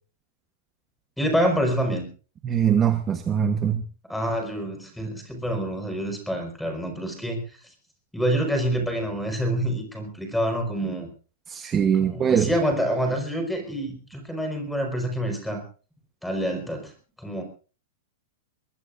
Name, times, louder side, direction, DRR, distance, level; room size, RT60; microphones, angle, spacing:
voice 1, 1.2-2.1 4.1-7.4 8.1-11.1 12.0-15.6 16.2-16.9 17.2-17.4, equal, ahead, 4.9 m, -27 dB
voice 2, 2.4-3.8 11.5-12.5, right 8 dB, 15° right, 1.1 m, -22 dB
22.5 x 22.0 x 2.6 m
supercardioid pair, 165°, 0 cm